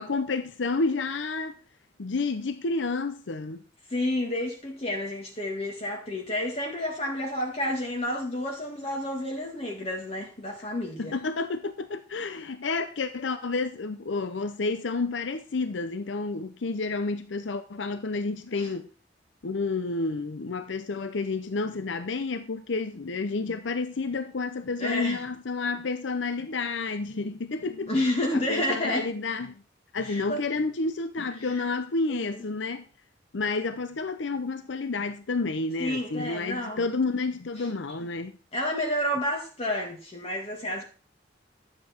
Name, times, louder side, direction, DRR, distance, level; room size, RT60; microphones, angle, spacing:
voice 1, 0.0-1.6 2.0-3.6 10.6-10.7 11.0-18.9 19.4-28.1 28.3-29.6 29.9-32.8 33.3-38.3, left 3 dB, 80° left, 0.7 m, -30 dB
voice 2, 3.9-11.2 18.6-18.7 24.8-25.2 27.9-29.1 30.0-30.4 32.1-32.4 35.8-36.9 37.6-37.7 38.5-40.8, left 1 dB, 35° left, 2.1 m, -30 dB
13.0 x 7.7 x 4.4 m
head